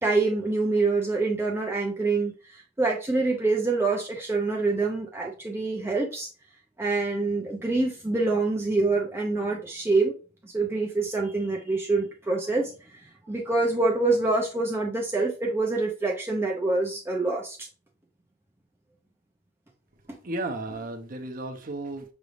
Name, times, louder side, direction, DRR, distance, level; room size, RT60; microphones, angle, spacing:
voice 1, 0.0-6.3 6.8-10.2 10.4-17.7 20.1-20.2, right 3 dB, 10° right, -1 dB, 0.6 m, -26 dB
voice 2, 20.2-22.1, right 2 dB, 45° right, 4 dB, 0.8 m, -34 dB
6.0 x 3.3 x 2.5 m, 0.35 s
head